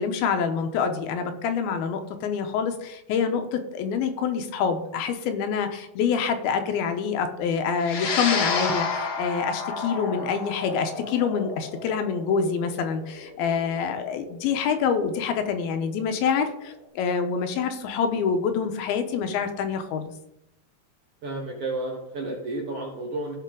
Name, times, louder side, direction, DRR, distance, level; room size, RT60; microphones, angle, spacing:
voice 1, 0.0-20.1, left 6 dB, 90° left, 6 dB, 2.8 m, -26 dB
sound 1, 7.8-16.4, left 4 dB, 60° left, 1.7 m, -31 dB
voice 2, 21.2-23.3, right 2 dB, 55° right, -1 dB, 1.8 m, -32 dB
15.5 x 5.6 x 3.8 m, 0.83 s
omnidirectional pair, 4.3 m